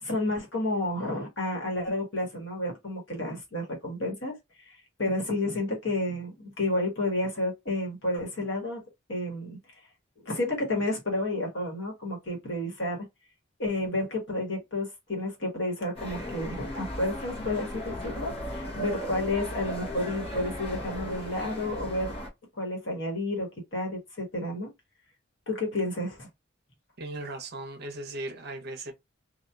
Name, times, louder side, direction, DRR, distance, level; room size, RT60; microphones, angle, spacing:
voice 1, 0.0-4.4 4.6-8.8 9.1-9.6 10.2-13.0 13.6-22.1 22.6-24.7 25.5-26.3, left 1 dB, 60° left, 1.3 m, -31 dB
sound 1, 16.0-22.3, left 1 dB, 25° left, 0.9 m, -36 dB
voice 2, 27.0-28.9, right 2 dB, 50° right, 0.7 m, -37 dB
2.8 x 2.3 x 2.2 m
head